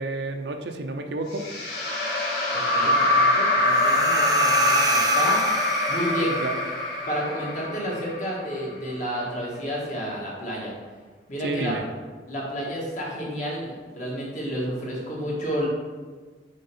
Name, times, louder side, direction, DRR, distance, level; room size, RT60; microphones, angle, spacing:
voice 1, 0.0-1.5 6.4-6.6 11.4-11.9, right 2 dB, 70° right, 5 dB, 0.6 m, -30 dB
sound 1, 1.3-8.6, left 1 dB, 70° left, 1.6 m, -23 dB
voice 2, 2.5-5.4 5.9-6.4 7.1-10.7 11.3-11.7 12.3-15.7, equal, 40° left, -5 dB, 1.8 m, -31 dB
sound 2, 3.7-6.4, right 4 dB, 20° right, 0.4 m, -30 dB
6.4 x 4.5 x 4.2 m, 1.4 s
head